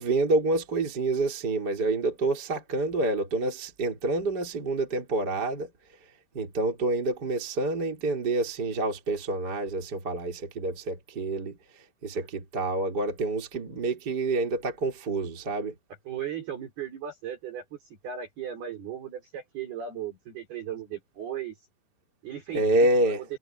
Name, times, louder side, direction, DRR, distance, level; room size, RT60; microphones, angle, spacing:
voice 1, 0.0-5.7 6.3-11.6 12.0-15.7 22.5-23.2, right 2 dB, 20° right, 3.4 m, -27 dB
voice 2, 16.1-21.6 22.2-23.1, right 9 dB, 50° right, 6.8 m, -37 dB
omnidirectional pair, 6.0 m